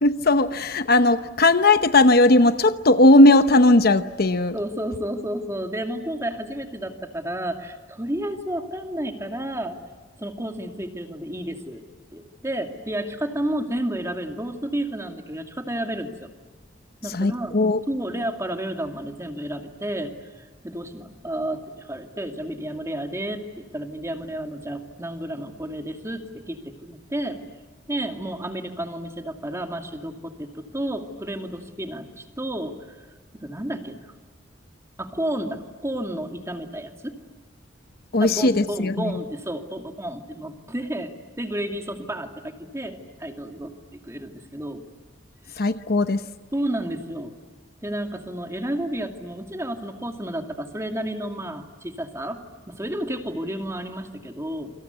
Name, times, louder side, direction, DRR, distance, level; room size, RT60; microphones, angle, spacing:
voice 1, 0.0-4.6 17.1-17.8 38.1-39.1 45.6-46.2, left 2 dB, 50° left, 10 dB, 1.0 m, -17 dB
voice 2, 4.5-9.8 10.2-11.8 12.1-16.3 17.0-17.6 17.9-20.1 20.4-27.4 27.9-33.0 33.3-34.1 35.0-37.1 38.2-44.8 46.5-47.3 47.8-54.7, right 1 dB, 15° right, 4 dB, 2.5 m, -31 dB
28.0 x 25.5 x 8.2 m, 1.3 s
head